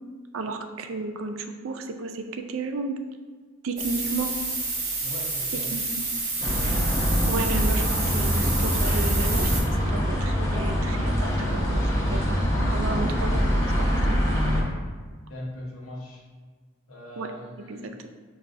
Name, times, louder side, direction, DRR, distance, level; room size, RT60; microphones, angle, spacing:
voice 1, 0.3-3.0 3.6-4.3 5.7-6.1 6.6-6.8 7.3-12.4 12.7-14.2 17.2-17.3 17.7-17.8, right 3 dB, 70° right, 6 dB, 0.4 m, -33 dB
sound 1, 3.8-9.6, right 3 dB, 35° right, 0.9 m, -29 dB
voice 2, 5.0-5.7 15.3-16.2 16.9-18.0, left 1 dB, 80° left, -2 dB, 0.9 m, -39 dB
sound 2, 6.4-14.6, equal, 15° left, 0.6 m, -24 dB
6.3 x 2.3 x 2.5 m, 1.5 s
head